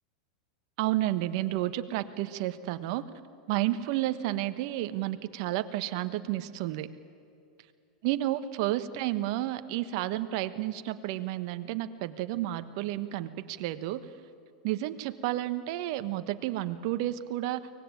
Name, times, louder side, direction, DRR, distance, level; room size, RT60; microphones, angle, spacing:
voice 1, 0.8-3.0 3.5-6.9 8.0-14.0 14.6-17.6, right 14 dB, 60° right, 11 dB, 1.3 m, -31 dB
24.0 x 19.0 x 9.1 m, 2.5 s
hypercardioid pair, 110°, 3 cm